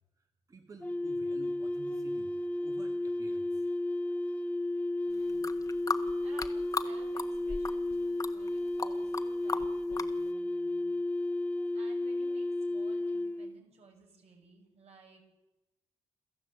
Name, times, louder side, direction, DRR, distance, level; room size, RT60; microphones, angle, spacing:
voice 1, 0.2-2.3 2.6-3.7, right 2 dB, 30° right, 5 dB, 1.8 m, -52 dB
sound 1, 0.8-13.5, left 1 dB, 15° left, 1.1 m, -33 dB
voice 2, 4.4-4.7 5.1-5.5 6.2-10.9 11.7-15.2, right 5 dB, 70° right, 3 dB, 6.3 m, -58 dB
sound 2, 5.3-6.9 7.2-7.9 8.2-9.2 9.5-10.1, left 4 dB, 30° left, 1.4 m, -35 dB
27.5 x 14.5 x 8.2 m, 1.0 s
cardioid pair, 120°, 11 cm